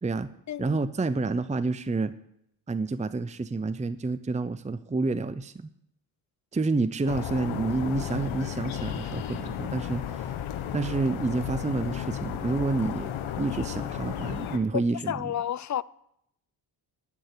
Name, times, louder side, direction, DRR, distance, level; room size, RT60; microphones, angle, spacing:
voice 1, 0.6-2.1 2.7-5.7 6.5-10.3 10.7-13.1 13.4-15.3, right 3 dB, 15° right, 0.7 m, -29 dB
sound 1, 7.1-14.6, left 10 dB, 80° left, 1.4 m, -34 dB
voice 2, 14.7-15.8, left 10 dB, 35° left, 0.6 m, -31 dB
14.5 x 6.6 x 9.8 m
cardioid pair, 65°, 47 cm